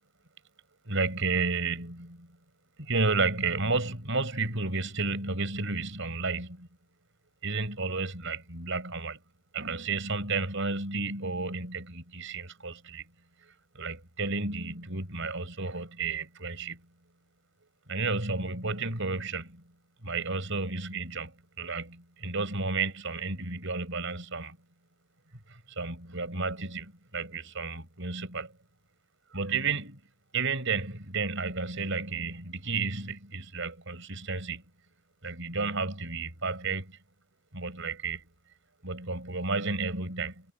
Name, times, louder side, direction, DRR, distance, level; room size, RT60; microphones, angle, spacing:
voice 1, 0.9-2.3 2.8-6.7 7.4-9.2 9.5-13.0 13.7-16.8 17.9-19.6 20.0-21.3 21.6-24.6 25.8-28.5 29.3-30.0 30.3-34.6 35.2-37.0 37.5-38.3 38.8-40.3, right 3 dB, 55° right, 6.2 m, -32 dB
head